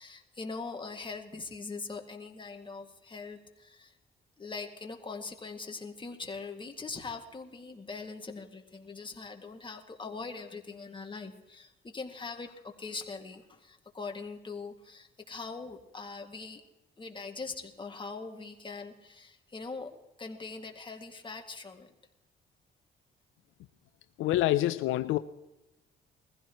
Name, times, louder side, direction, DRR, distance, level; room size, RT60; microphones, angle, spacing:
voice 1, 0.0-4.0 4.4-16.6 17.0-19.9 20.2-21.9, left 4 dB, 25° left, 2.2 m, -42 dB
voice 2, 24.2-25.2, left 14 dB, 85° left, 0.5 m, -26 dB
21.5 x 15.5 x 3.1 m
cardioid pair, 90°, 20 cm